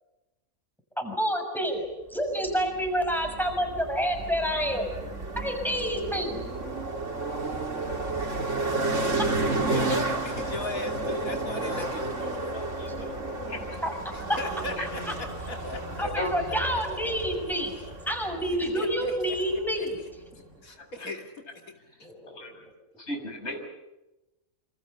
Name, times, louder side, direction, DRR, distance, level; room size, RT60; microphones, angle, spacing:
voice 1, 1.0-4.9 5.4-6.4 13.8-14.4 16.0-17.7 18.1-20.0 22.0-22.4, equal, ahead, 4 dB, 6.5 m, -28 dB
sound 1, 2.5-19.9, right 2 dB, 60° right, 3.5 m, -32 dB
voice 2, 9.7-13.1 14.3-15.0 15.5-15.8 18.6-19.9 20.6-21.3 21.7-21.8 22.5-22.7, left 1 dB, 85° left, 4 dB, 3.1 m, -38 dB
voice 3, 15.7-16.3 22.3-22.6 23.0-23.7, left 1 dB, 50° left, 4 dB, 5.8 m, -35 dB
28.5 x 26.5 x 7.0 m, 0.99 s
omnidirectional pair, 1.4 m